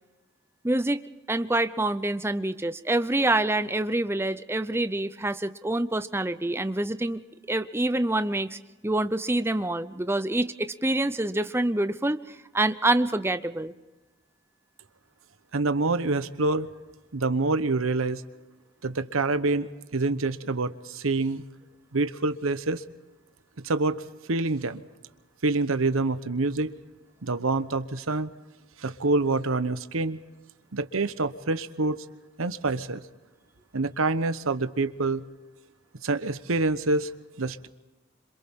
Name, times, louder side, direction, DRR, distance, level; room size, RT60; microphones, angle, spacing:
voice 1, 0.6-7.2 7.5-13.7, right 2 dB, 10° right, 11 dB, 0.6 m, -26 dB
voice 2, 15.5-16.7 17.1-18.2 18.8-21.4 21.9-22.8 23.6-24.0 24.3-24.8 25.4-26.7 27.2-28.3 28.8-30.2 30.7-32.0 32.4-33.0 33.7-35.2 36.0-37.1 37.4-37.7, right 3 dB, 80° right, 12 dB, 1.0 m, -26 dB
27.0 x 26.5 x 3.7 m, 1.1 s
head